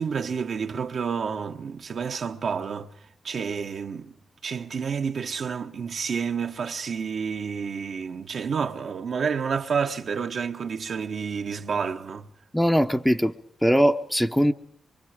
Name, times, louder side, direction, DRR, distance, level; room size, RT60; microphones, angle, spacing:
voice 1, 0.0-2.9 3.2-4.1 4.4-12.3, right 6 dB, 65° right, 1.2 m, -29 dB
voice 2, 12.5-13.3 13.6-14.5, equal, 5° left, 0.8 m, -21 dB
24.5 x 24.0 x 5.0 m
cardioid pair, 80°, 0 cm